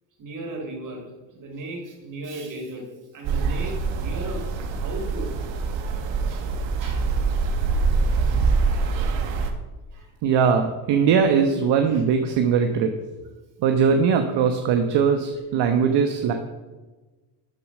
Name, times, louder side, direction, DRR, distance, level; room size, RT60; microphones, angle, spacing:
voice 1, 0.2-2.9 3.1-4.4 4.7-5.3 5.7-6.0 6.3-6.5 6.8-7.1 9.9-10.1 11.9-12.0, right 2 dB, 40° right, 2 dB, 3.5 m, -36 dB
sound 1, 3.2-9.5, right 4 dB, 80° right, 1.7 m, -24 dB
voice 2, 10.2-12.9 13.6-16.3, right 6 dB, 60° right, 5 dB, 1.2 m, -20 dB
13.5 x 6.9 x 6.1 m, 1.2 s
cardioid pair, 130°, 45 cm